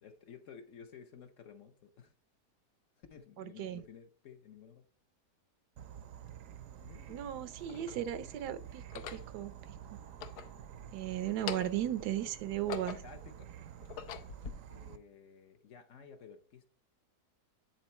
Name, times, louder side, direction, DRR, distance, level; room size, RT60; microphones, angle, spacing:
voice 1, 0.0-2.1 3.0-4.9 6.8-7.3 7.6-7.9 11.7-12.3 12.6-13.5 14.0-14.1 14.7-16.6, left 7 dB, 60° left, 0.9 m, -54 dB
voice 2, 3.4-3.8 7.1-9.5 9.9-10.0 10.9-13.0, right 11 dB, 80° right, 1.2 m, -36 dB
Insect / Frog, 5.8-15.0, right 9 dB, 65° right, 0.9 m, -50 dB
sound 1, 6.3-6.4 7.2-8.0 8.8-9.3 10.0-11.0 11.3-11.9 12.4-13.2 13.7-14.5, left 9 dB, 75° left, 1.2 m, -43 dB
9.1 x 3.8 x 4.2 m
omnidirectional pair, 1.7 m